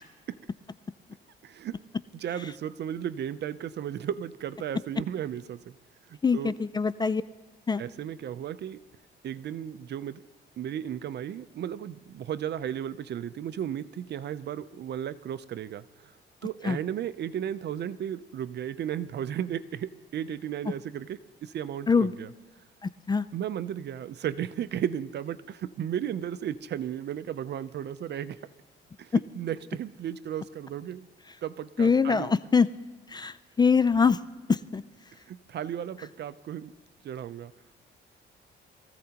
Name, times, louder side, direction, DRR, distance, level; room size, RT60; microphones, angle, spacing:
voice 1, 1.4-1.8 2.1-5.7 6.1-6.5 7.8-8.8 9.2-10.2 10.6-16.1 16.4-22.3 23.3-28.4 29.0-31.1 31.4-32.3 35.3-36.7 37.0-37.5, right 10 dB, 60° right, 15 dB, 0.6 m, -34 dB
voice 2, 6.2-7.2 7.7-7.8 16.6-16.8 21.9-22.1 23.1-23.3 29.1-29.2 31.8-32.7 33.1-34.2 34.5-34.8, left 5 dB, 20° left, 16 dB, 0.4 m, -23 dB
23.5 x 15.0 x 2.9 m, 1.3 s
cardioid pair, 90°, 20 cm